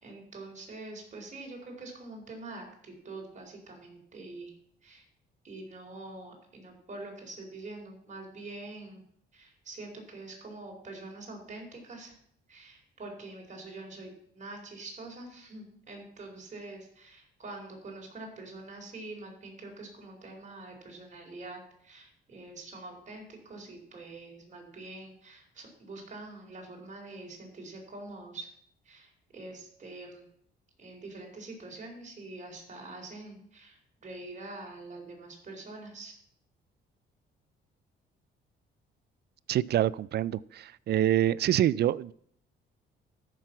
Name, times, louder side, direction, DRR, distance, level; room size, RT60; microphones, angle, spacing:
voice 1, 0.0-4.5 4.8-5.0 5.4-9.0 9.3-12.2 12.5-28.5 28.8-30.3 30.8-36.1, right 2 dB, 40° right, 4.3 m, -45 dB
voice 2, 39.5-42.1, right 12 dB, 55° right, 0.4 m, -26 dB
13.5 x 6.1 x 5.7 m
cardioid pair, 90°, 20 cm